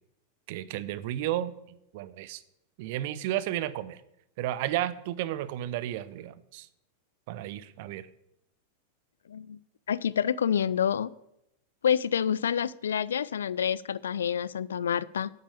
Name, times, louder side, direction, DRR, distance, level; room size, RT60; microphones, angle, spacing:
voice 1, 0.5-2.4 2.8-4.0 4.4-6.7 7.3-8.1, right 13 dB, 50° right, 16 dB, 0.7 m, -33 dB
voice 2, 9.9-11.1 11.8-15.3, left 8 dB, 65° left, 20 dB, 0.4 m, -28 dB
9.8 x 8.8 x 6.8 m, 0.83 s
figure-of-eight pair, 90°, 0 cm